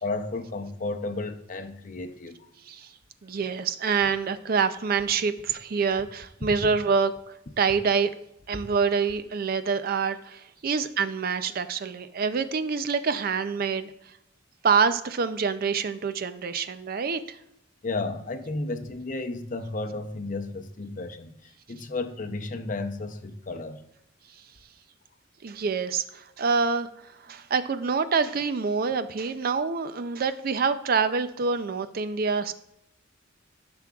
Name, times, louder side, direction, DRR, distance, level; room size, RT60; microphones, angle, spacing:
voice 1, 0.0-2.5 17.8-23.8, left 3 dB, 40° left, 0.6 m, -33 dB
voice 2, 3.2-7.1 7.6-8.1 8.5-13.9 14.6-17.4 25.4-32.5, right 5 dB, 50° right, 0.4 m, -26 dB
13.0 x 6.0 x 2.3 m
head